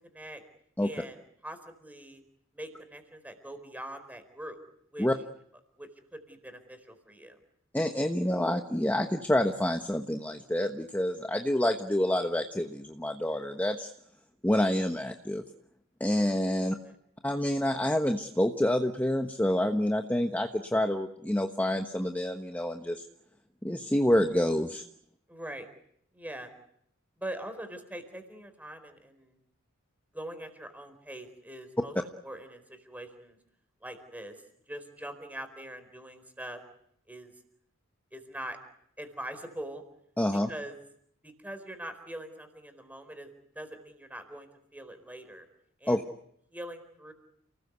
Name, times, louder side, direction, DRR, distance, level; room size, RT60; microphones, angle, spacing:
voice 1, 0.1-0.4 0.8-2.2 2.5-4.6 4.9-5.1 5.8-7.4 16.8-17.0 25.3-25.7 26.1-26.5 27.2-29.4 30.1-33.4 33.8-34.3 34.7-36.6 37.1-37.3 38.1-38.6 39.0-39.8 40.5-40.8 41.2-43.3 43.5-45.5 45.8-46.1 46.5-47.1, right 1 dB, 10° right, 8 dB, 4.4 m, -43 dB
voice 2, 7.7-13.9 14.4-15.4 16.0-16.8 17.2-23.0 23.6-24.8 40.2-40.5 45.9-46.0, left 1 dB, 10° left, 5 dB, 1.2 m, -28 dB
30.0 x 20.0 x 8.2 m, 0.72 s
head